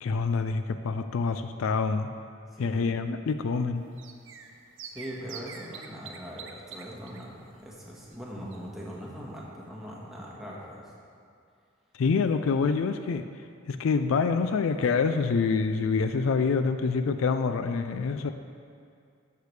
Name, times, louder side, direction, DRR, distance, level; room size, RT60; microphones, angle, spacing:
voice 1, 0.0-2.1 2.6-3.8 11.9-13.2 13.7-18.3, left 4 dB, 75° left, 9 dB, 0.4 m, -26 dB
voice 2, 2.5-2.9 4.9-10.9, equal, ahead, -5 dB, 1.4 m, -41 dB
sound 1, 3.8-9.0 9.2-9.3 9.6-9.7, right 6 dB, 65° right, 0.6 m, -46 dB
13.5 x 6.6 x 3.3 m, 2.4 s
head